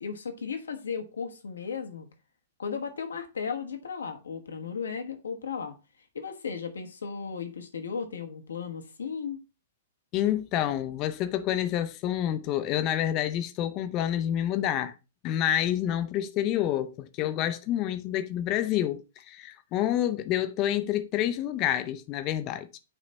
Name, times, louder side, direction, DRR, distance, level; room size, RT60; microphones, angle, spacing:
voice 1, 0.0-2.1 2.6-5.7 6.1-9.4, left 6 dB, 70° left, 1.2 m, -35 dB
voice 2, 10.1-14.9 15.2-19.0 19.3-22.8, left 11 dB, 35° left, 0.7 m, -28 dB
9.0 x 3.2 x 4.0 m
figure-of-eight pair, 110°, 0 cm